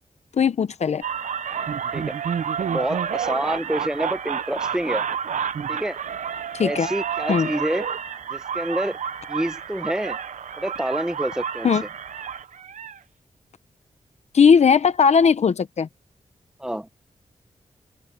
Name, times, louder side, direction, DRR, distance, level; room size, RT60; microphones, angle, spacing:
voice 1, 0.3-1.0 6.5-6.9 7.3-7.5 11.6-11.8 14.3-15.9, left 6 dB, 65° left, 0.8 m, -18 dB
sound 1, 1.0-13.0, right 7 dB, 85° right, 0.8 m, -29 dB
voice 2, 2.6-5.0 5.7-6.0 6.6-7.9 8.3-9.0 9.3-10.2 10.6-11.7 16.6-16.9, right 1 dB, 5° right, 1.2 m, -27 dB
open air
wide cardioid pair, 140°, 12 cm